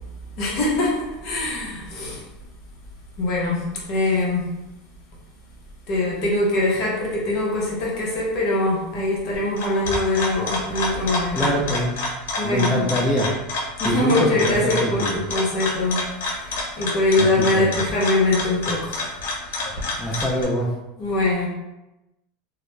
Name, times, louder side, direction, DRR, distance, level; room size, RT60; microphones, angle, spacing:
voice 1, 0.4-2.2 3.2-4.5 5.9-11.4 12.4-12.8 13.8-19.0 21.0-21.5, left 2 dB, 45° left, -4 dB, 0.8 m, -23 dB
sound 1, 9.3-20.4, left 2 dB, 85° left, 0.7 m, -28 dB
voice 2, 11.4-12.0 12.4-13.3 13.8-15.2 17.2-17.3 17.5-17.7 20.0-20.7, equal, ahead, -6 dB, 0.4 m, -24 dB
2.4 x 2.1 x 3.1 m, 0.97 s
supercardioid pair, 155°, 0 cm